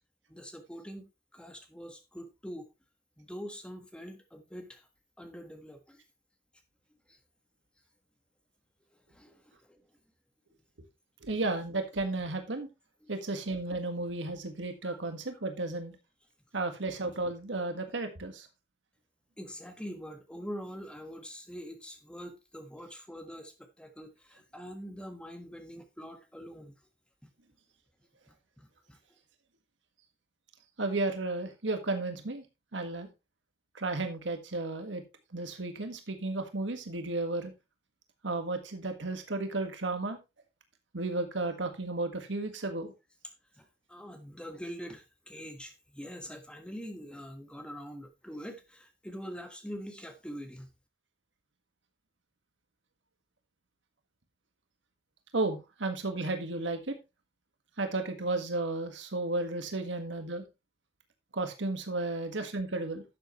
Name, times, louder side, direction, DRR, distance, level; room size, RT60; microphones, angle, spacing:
voice 1, 0.3-2.7 3.2-4.8 5.2-6.0 7.1-7.2 9.1-9.3 9.6-9.8 13.0-13.1 14.8-15.0 19.4-26.7 28.6-29.0 43.6-50.7, equal, 5° left, 1.4 m, -44 dB
voice 2, 11.2-12.7 13.1-15.9 16.5-18.5 30.8-32.4 32.7-33.1 33.7-35.0 35.3-37.5 38.2-40.2 40.9-42.9 55.3-56.9 57.8-60.4 61.3-63.0, right 2 dB, 85° right, 1.7 m, -33 dB
11.5 x 7.6 x 3.1 m
head